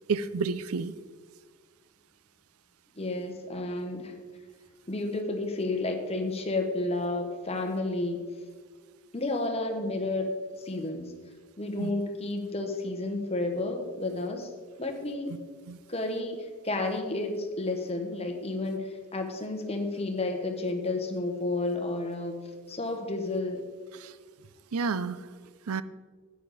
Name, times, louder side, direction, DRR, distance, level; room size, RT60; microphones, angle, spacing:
voice 1, 0.1-0.9 11.8-11.9 15.7-15.8 23.9-24.1 24.7-25.2 25.7-25.8, right 5 dB, 75° right, 15 dB, 0.5 m, -30 dB
voice 2, 2.9-4.1 4.9-8.3 9.1-10.3 10.6-11.1 11.6-14.5 14.8-15.3 15.9-22.4 22.7-23.6, left 2 dB, 25° left, 4 dB, 1.1 m, -31 dB
12.0 x 9.1 x 4.1 m, 1.5 s
head